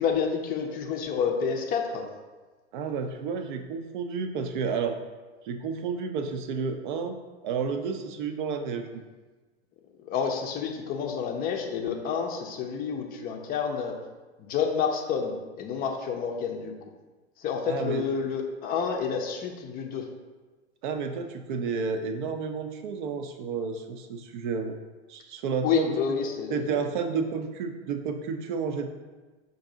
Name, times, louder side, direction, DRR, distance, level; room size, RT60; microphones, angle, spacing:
voice 1, 0.0-2.1 10.0-14.0 14.4-16.7 17.4-20.1 25.6-26.7, left 6 dB, 25° left, 2 dB, 0.5 m, -29 dB
voice 2, 2.7-5.0 5.4-7.2 7.4-8.9 17.7-18.0 20.8-24.8 25.1-25.9 26.5-28.9, right 5 dB, 45° right, 7 dB, 0.5 m, -31 dB
5.2 x 2.6 x 3.7 m, 1.3 s
hypercardioid pair, 100°, 34 cm